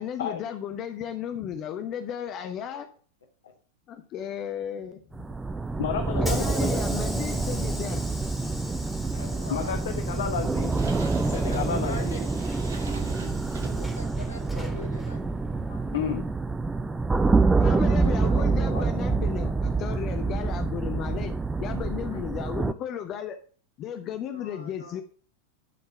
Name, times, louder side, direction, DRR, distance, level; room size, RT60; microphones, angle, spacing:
voice 1, 0.0-2.9 3.9-5.2 6.2-8.1 17.6-23.4 23.8-25.0, left 9 dB, 35° left, 7 dB, 1.0 m, -34 dB
sound 1, 5.1-22.7, right 3 dB, 10° right, 0.6 m, -27 dB
Hiss / Sliding door, 5.5-16.4, left 2 dB, 5° left, 2.6 m, -42 dB
voice 2, 5.8-6.7 9.5-10.7 11.3-12.1 15.7-16.3, left 8 dB, 60° left, 6 dB, 1.0 m, -31 dB
voice 3, 9.1-9.8 11.4-12.3 13.7-15.2 17.4-19.1 24.3-25.0, left 2 dB, 75° left, 1 dB, 2.6 m, -41 dB
sound 2, 10.1-15.0, right 4 dB, 65° right, 1.4 m, -43 dB
11.0 x 4.6 x 5.7 m, 0.42 s
figure-of-eight pair, 90°, 0 cm